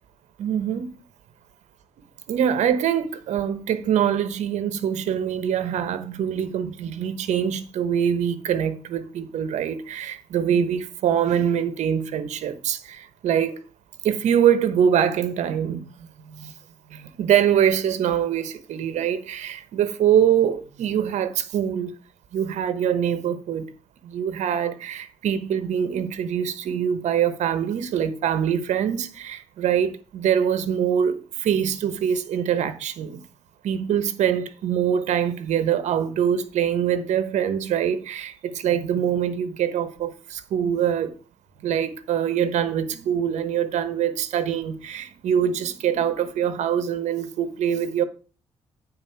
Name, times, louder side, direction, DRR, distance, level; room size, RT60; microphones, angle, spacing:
voice 1, 0.4-0.9 2.3-13.6 14.0-16.5 16.9-21.9 22.3-23.7 24.0-33.2 33.6-41.1 41.6-48.0, right 9 dB, 80° right, 1.0 m, -24 dB
9.0 x 4.1 x 5.6 m
cardioid pair, 80°, 12 cm